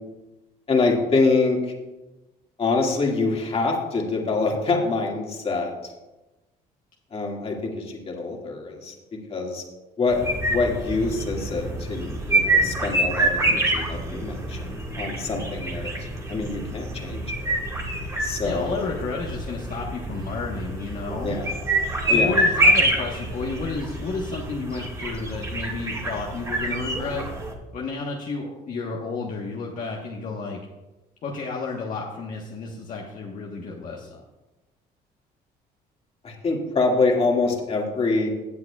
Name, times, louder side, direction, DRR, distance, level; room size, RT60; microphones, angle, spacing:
voice 1, 0.7-1.7 2.6-5.9 7.1-9.6 10.0-15.9 16.3-17.5 18.2-18.9 21.2-21.6 22.1-22.3 36.2-38.3, left 3 dB, 35° left, 0 dB, 2.0 m, -25 dB
sound 1, 10.1-27.5, right 1 dB, 20° right, 1.8 m, -26 dB
voice 2, 18.4-21.4 22.1-27.3 27.7-30.6 31.2-34.2, left 4 dB, 50° left, -2 dB, 1.2 m, -32 dB
16.5 x 7.6 x 2.4 m, 1.1 s
cardioid pair, 110°, 17 cm